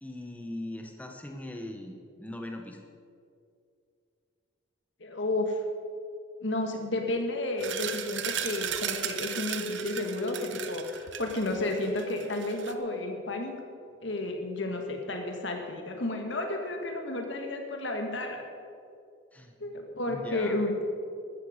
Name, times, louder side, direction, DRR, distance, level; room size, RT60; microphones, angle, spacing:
voice 1, 0.0-2.8 19.3-19.5 20.1-20.6, left 1 dB, 10° left, 3 dB, 1.2 m, -40 dB
voice 2, 5.0-5.6 6.4-13.5 14.0-18.4 19.6-20.7, left 2 dB, 70° left, 3 dB, 1.8 m, -32 dB
sound 1, 7.6-12.7, right 9 dB, 75° right, 0.9 m, -36 dB
14.5 x 12.5 x 5.2 m, 2.4 s
head